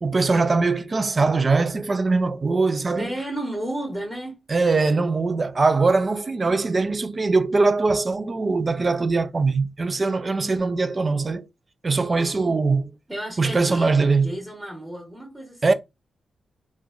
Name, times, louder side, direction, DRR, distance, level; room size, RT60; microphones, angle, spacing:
voice 1, 0.0-3.1 4.5-11.5 11.8-12.9 13.4-14.4 15.6-15.7, right 3 dB, 40° right, 0.3 m, -21 dB
voice 2, 3.0-4.4 13.1-15.6, right 1 dB, 10° right, 1.2 m, -32 dB
3.1 x 2.2 x 2.5 m
cardioid pair, 75°, 0 cm